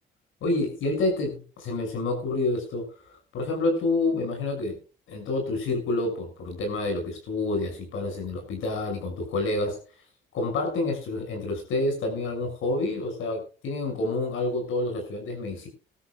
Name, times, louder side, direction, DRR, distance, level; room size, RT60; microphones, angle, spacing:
voice 1, 0.4-2.8 3.3-4.8 5.1-9.8 10.3-15.7, left 2 dB, 85° left, 3 dB, 6.6 m, -28 dB
20.5 x 12.5 x 2.4 m, 0.36 s
cardioid pair, 90°, 20 cm